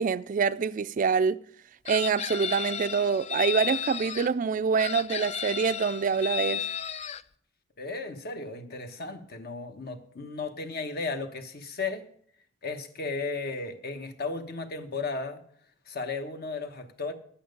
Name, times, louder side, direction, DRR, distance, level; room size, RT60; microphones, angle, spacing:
voice 1, 0.0-1.4 1.9-6.6, right 5 dB, 45° right, 0.3 m, -26 dB
Chicken rooster, 1.9-4.3 4.8-7.2, left 9 dB, 35° left, 0.3 m, -33 dB
voice 2, 7.8-12.1 12.6-15.4 15.9-17.1, left 3 dB, 55° left, 1.1 m, -35 dB
11.5 x 8.7 x 5.2 m
head